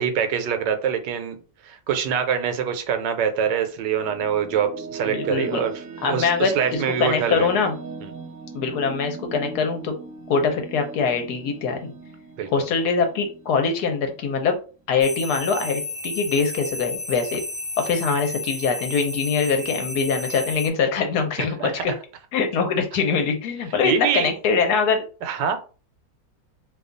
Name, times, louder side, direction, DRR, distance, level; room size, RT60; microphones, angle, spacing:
voice 1, 0.0-5.7 6.0-7.5 8.0-8.1 12.4-12.6 21.4-21.7 23.8-24.3 25.2-25.6, right 8 dB, 80° right, 7 dB, 1.3 m, -25 dB
sound 1, 3.7-14.8, right 4 dB, 65° right, 0.7 m, -39 dB
voice 2, 5.0-5.6 6.0-7.7 8.5-9.9 10.3-11.9 12.5-14.6 14.9-17.4 17.8-21.9 22.3-25.0, left 5 dB, 70° left, 5 dB, 1.1 m, -23 dB
sound 2, 15.0-20.7, left 2 dB, 30° right, 0.3 m, -32 dB
2.9 x 2.3 x 3.7 m, 0.36 s
omnidirectional pair, 1.9 m